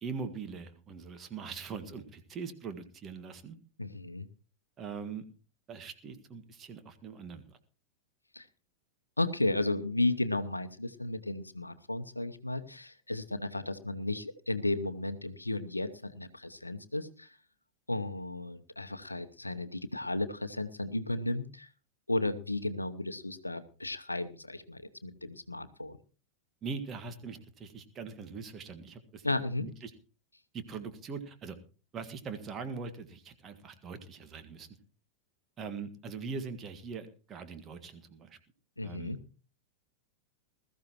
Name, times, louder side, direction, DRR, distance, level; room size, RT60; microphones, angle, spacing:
voice 1, 0.0-3.6 4.8-5.3 5.7-7.6 26.6-29.3 29.6-29.9 30.5-31.6 31.9-34.7 35.6-38.4 38.8-39.2, right 5 dB, 25° right, 9 dB, 1.7 m, -42 dB
voice 2, 3.8-4.3 8.3-8.5 9.2-17.4 17.9-21.7 22.1-26.0 29.2-29.7 38.8-39.2, left 2 dB, 85° left, 12 dB, 0.8 m, -34 dB
20.5 x 14.0 x 3.0 m, 0.35 s
figure-of-eight pair, 90°, 0 cm